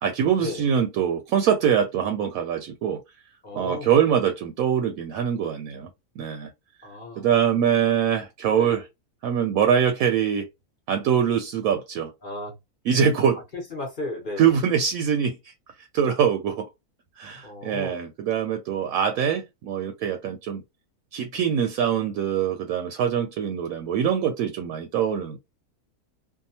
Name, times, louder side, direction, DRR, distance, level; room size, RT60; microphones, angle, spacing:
voice 1, 0.0-3.0 3.5-5.9 6.2-6.5 7.2-8.9 9.2-10.5 10.9-12.1 12.8-13.4 14.4-15.5 15.9-16.7 17.2-20.6 21.1-25.4, right 8 dB, 75° right, 1.0 m, -23 dB
voice 2, 3.4-3.9 6.8-7.2 8.5-8.7 12.2-12.5 13.7-14.5 17.4-18.0, left 2 dB, 40° left, 1.0 m, -34 dB
2.7 x 2.2 x 2.7 m
omnidirectional pair, 1.6 m